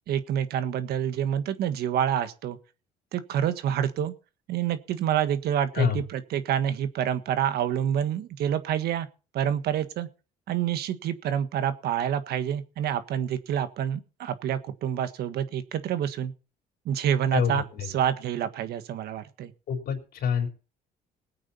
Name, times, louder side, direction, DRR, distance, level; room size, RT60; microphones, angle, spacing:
voice 1, 0.1-2.6 3.1-4.1 4.5-9.1 9.3-10.1 10.5-16.3 16.8-17.6 17.9-19.5, right 9 dB, 70° right, 11 dB, 1.6 m, -27 dB
voice 2, 17.3-17.9 19.7-20.5, left 7 dB, 65° left, 5 dB, 4.0 m, -27 dB
20.0 x 8.8 x 4.3 m, 0.35 s
cardioid pair, 110°, 17 cm